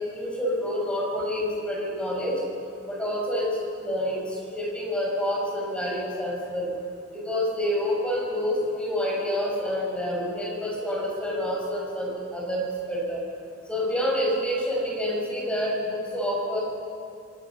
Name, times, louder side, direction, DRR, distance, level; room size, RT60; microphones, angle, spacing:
voice 1, 0.1-2.4 2.8-6.7 7.1-13.2 13.7-16.6, equal, 5° left, -3 dB, 6.4 m, -28 dB
26.5 x 19.0 x 6.4 m, 2.7 s
head